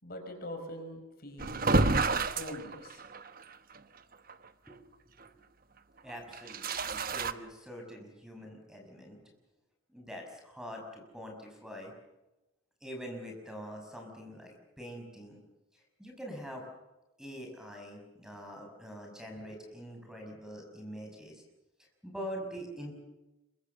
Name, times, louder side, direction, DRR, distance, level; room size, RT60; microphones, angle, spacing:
voice 1, 0.0-1.8 2.1-3.0, left 1 dB, 45° left, 5 dB, 4.9 m, -44 dB
sound 1, 1.4-3.4 3.8-3.9 4.3-4.4 6.3-7.3, right 3 dB, 40° right, 1.1 m, -29 dB
voice 2, 6.0-9.2 9.9-11.9 12.8-15.4 15.7-16.6 17.2-21.4 22.0-22.9, equal, 5° right, 2 dB, 5.9 m, -44 dB
27.0 x 24.0 x 6.8 m, 0.98 s
head